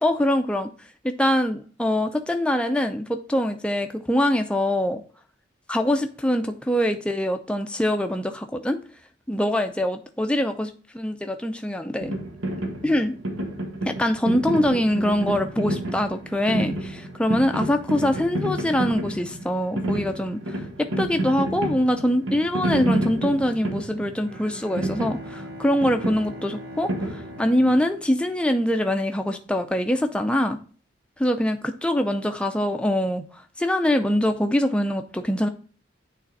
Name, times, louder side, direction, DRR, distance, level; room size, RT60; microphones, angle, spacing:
voice 1, 0.0-0.7 1.0-5.0 5.7-8.8 9.3-12.1 12.8-13.1 13.9-30.6 31.2-35.5, left 1 dB, 5° left, 0.4 m, -24 dB
sound 1, 12.0-27.8, right 1 dB, 90° right, 1.1 m, -30 dB
Bowed string instrument, 24.1-29.0, equal, 50° right, 3.2 m, -41 dB
8.6 x 3.3 x 4.0 m
head